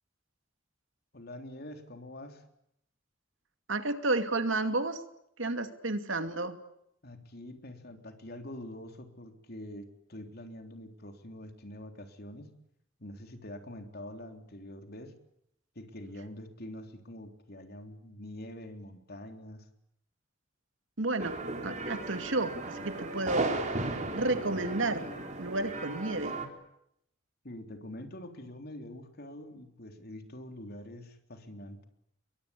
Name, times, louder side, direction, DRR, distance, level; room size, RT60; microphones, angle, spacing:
voice 1, 1.1-2.4 7.0-12.5 13.0-15.1 15.8-19.7 27.4-31.8, left 1 dB, 55° left, 6 dB, 3.6 m, -45 dB
voice 2, 3.7-5.0 5.4-6.6 21.0-21.4 21.6-25.1 25.4-26.4, right 2 dB, 75° right, 8 dB, 2.5 m, -31 dB
sound 1, 21.2-26.5, right 2 dB, 40° right, 3.8 m, -36 dB
28.5 x 23.0 x 8.6 m, 0.76 s
head